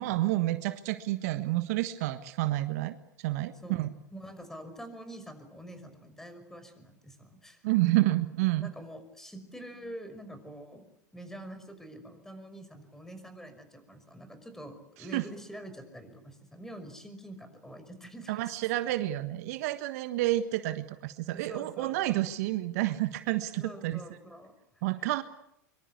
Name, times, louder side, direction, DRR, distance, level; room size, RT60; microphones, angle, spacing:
voice 1, 0.0-3.9 7.6-8.7 15.1-15.3 18.3-24.0 24.8-25.2, right 16 dB, 60° right, 11 dB, 1.4 m, -29 dB
voice 2, 4.1-7.7 8.6-10.9 11.1-18.4 21.3-22.2 23.5-24.8, right 1 dB, 5° left, 9 dB, 5.7 m, -46 dB
24.5 x 24.5 x 8.4 m, 0.76 s
hypercardioid pair, 95°, 10 cm